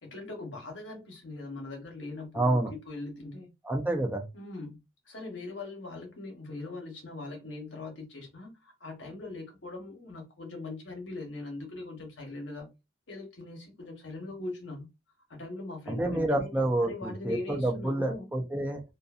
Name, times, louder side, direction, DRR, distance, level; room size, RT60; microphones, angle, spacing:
voice 1, 0.0-2.6 2.9-3.5 4.3-4.8 5.1-12.7 13.1-14.9 15.3-16.5 16.8-18.3, left 2 dB, 70° left, 1.0 m, -41 dB
voice 2, 2.3-2.7 3.6-4.3 15.9-18.8, right 1 dB, 10° right, 0.6 m, -28 dB
2.6 x 2.5 x 2.4 m
head